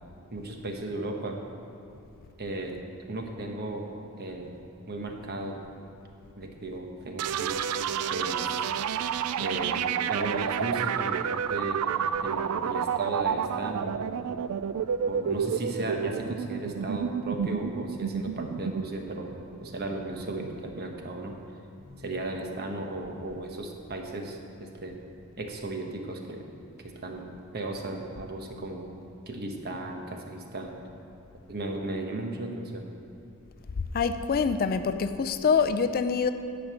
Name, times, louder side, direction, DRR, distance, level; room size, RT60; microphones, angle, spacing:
voice 1, 0.3-1.4 2.4-2.8 3.1-3.9 4.2-4.6 4.9-5.6 6.4-7.7 8.1-8.6 9.4-11.9 12.2-14.3 15.1-19.3 19.6-21.4 22.0-25.0 25.4-26.5 26.8-28.9 29.3-30.8 31.5-32.9, right 2 dB, 45° right, 3 dB, 1.1 m, -35 dB
sound 1, 7.2-20.8, right 8 dB, 90° right, 0.3 m, -30 dB
voice 2, 33.9-36.3, left 5 dB, 45° left, 10 dB, 0.4 m, -25 dB
10.5 x 5.2 x 7.9 m, 2.8 s
head